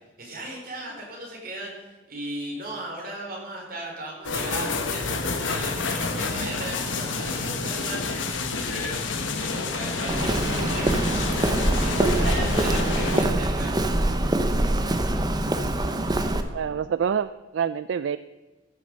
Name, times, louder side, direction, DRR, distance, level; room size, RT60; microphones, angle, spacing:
voice 1, 0.2-14.0, right 1 dB, 50° right, -1 dB, 4.1 m, -37 dB
sound 1, 4.2-13.2, left 4 dB, 85° left, 1.3 m, -29 dB
Walk footsteps, 10.1-16.4, right 1 dB, 20° right, 0.8 m, -24 dB
voice 2, 11.9-12.3 16.0-16.2 16.5-18.2, right 7 dB, 75° right, 14 dB, 0.3 m, -27 dB
15.0 x 6.8 x 6.6 m, 1.2 s
head